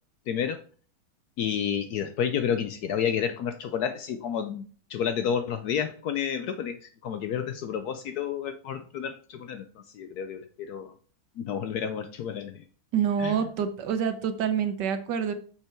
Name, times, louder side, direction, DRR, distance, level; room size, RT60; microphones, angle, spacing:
voice 1, 0.3-0.6 1.4-4.6 4.9-9.7 9.9-10.9 11.4-12.6 13.2-13.4, left 8 dB, 70° left, 9 dB, 1.0 m, -30 dB
voice 2, 12.9-15.3, right 8 dB, 75° right, 9 dB, 1.5 m, -27 dB
6.8 x 5.9 x 4.4 m, 0.43 s
omnidirectional pair, 1.9 m